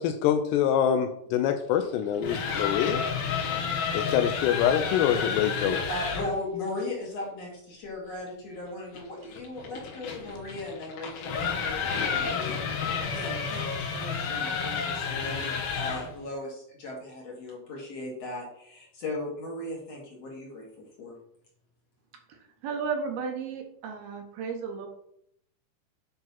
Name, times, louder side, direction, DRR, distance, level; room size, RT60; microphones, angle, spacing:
voice 1, 0.0-3.0 3.9-5.8, left 9 dB, 80° left, 8 dB, 2.6 m, -25 dB
sound 1, 2.0-6.3 8.9-16.2, left 6 dB, 60° left, 3.5 m, -31 dB
voice 2, 5.6-20.7 21.0-21.1, left 2 dB, 45° left, -2 dB, 2.8 m, -37 dB
voice 3, 22.3-24.9, right 5 dB, 70° right, 2 dB, 2.8 m, -34 dB
9.9 x 3.9 x 5.7 m, 0.72 s
omnidirectional pair, 5.1 m